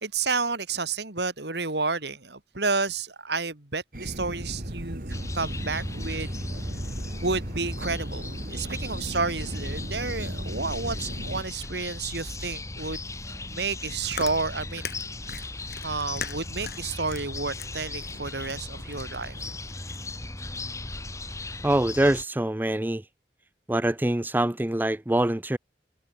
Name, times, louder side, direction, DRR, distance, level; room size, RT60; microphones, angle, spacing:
voice 1, 0.0-6.3 7.2-13.0 13.3-14.9 15.8-19.5, right 4 dB, 75° right, 2.9 m, -31 dB
sound 1, 3.9-11.4, right 1 dB, 50° right, 2.5 m, -36 dB
sound 2, 5.1-22.2, left 2 dB, 15° left, 3.2 m, -37 dB
Chewing mastication, 13.7-20.2, left 6 dB, 60° left, 1.9 m, -41 dB
voice 2, 21.6-23.0 23.7-25.6, right 1 dB, 10° right, 0.4 m, -24 dB
head